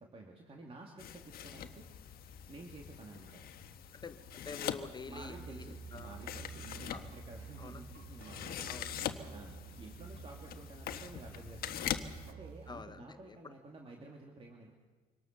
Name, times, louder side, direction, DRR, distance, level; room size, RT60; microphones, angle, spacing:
voice 1, 0.0-3.5 5.1-14.7, right 2 dB, 35° right, 0 dB, 2.8 m, -52 dB
sound 1, 1.0-12.3, left 9 dB, 65° left, 1.4 m, -43 dB
voice 2, 3.9-6.2 6.9-7.0 7.6-7.8 8.6-8.9 12.7-13.5, left 5 dB, 25° left, 11 dB, 0.9 m, -48 dB
sound 2, 5.1-12.8, right 7 dB, 70° right, 1.5 m, -51 dB
24.5 x 18.5 x 6.8 m, 1.3 s
cardioid pair, 110°, 17 cm